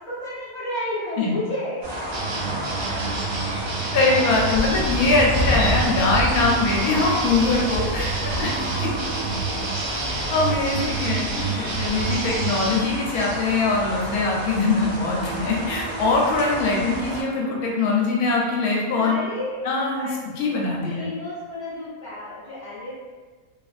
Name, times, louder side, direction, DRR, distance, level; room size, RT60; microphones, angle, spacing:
voice 1, 0.1-1.8 7.7-7.8 18.9-19.6 20.0-20.1 20.7-22.9, left 1 dB, 45° left, -10 dB, 0.6 m, -31 dB
sound 1, 1.8-17.2, equal, 45° right, 0.6 m, -31 dB
sound 2, 2.1-12.8, right 5 dB, 85° right, 1.2 m, -29 dB
voice 2, 3.9-8.1 8.4-8.9 9.9-10.0 10.3-19.1 19.6-20.1 20.4-21.1, left 3 dB, 80° left, -2 dB, 1.1 m, -22 dB
sound 3, 4.3-12.9, left 1 dB, 10° left, 0.7 m, -31 dB
2.9 x 2.5 x 2.4 m, 1.4 s
omnidirectional pair, 1.5 m